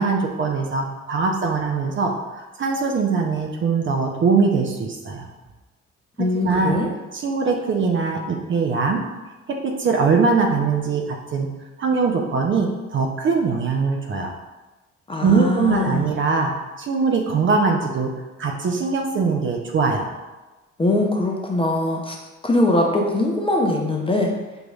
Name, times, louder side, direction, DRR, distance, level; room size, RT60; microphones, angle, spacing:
voice 1, 0.0-5.3 6.4-6.8 7.1-9.0 9.6-11.5 11.8-14.3 15.2-16.5 16.8-18.1 18.4-20.1, right 4 dB, 30° right, 1 dB, 0.5 m, -21 dB
voice 2, 6.2-6.9 15.1-16.1 20.8-22.2 22.4-24.3, left 2 dB, 15° left, 0 dB, 0.5 m, -21 dB
5.3 x 2.9 x 2.3 m, 1.1 s
figure-of-eight pair, 45°, 37 cm